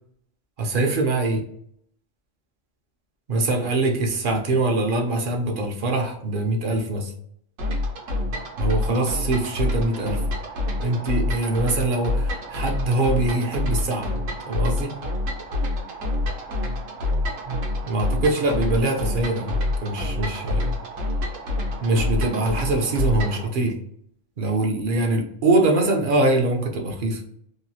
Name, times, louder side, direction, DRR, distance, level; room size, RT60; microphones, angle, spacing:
voice 1, 0.6-1.4 3.3-7.1 8.6-10.2 10.8-14.1 14.5-14.9 17.5-20.7 21.8-23.7 24.4-27.2, right 2 dB, 60° right, 3 dB, 0.6 m, -23 dB
sound 1, 7.6-23.5, left 2 dB, 80° right, 1.1 m, -27 dB
2.9 x 2.3 x 2.6 m, 0.69 s
omnidirectional pair, 1.3 m